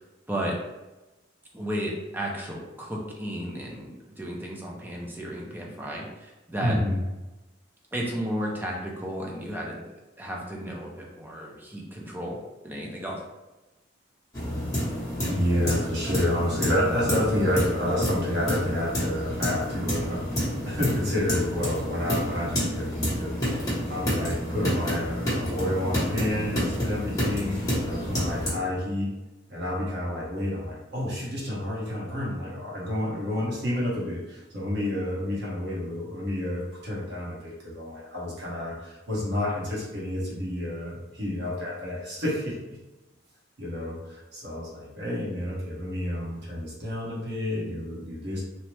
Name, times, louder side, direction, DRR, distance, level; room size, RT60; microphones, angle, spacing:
voice 1, 1.5-6.8 7.9-9.8 10.2-12.4 12.6-13.2, equal, 10° right, -2 dB, 0.4 m, -33 dB
voice 2, 6.6-7.0 15.3-20.3 20.6-29.1 29.5-42.6 43.6-48.4, left 1 dB, 55° right, -6 dB, 1.1 m, -29 dB
sound 1, 14.3-28.5, equal, 20° left, 0.9 m, -29 dB
2.8 x 2.1 x 3.1 m, 1.1 s
head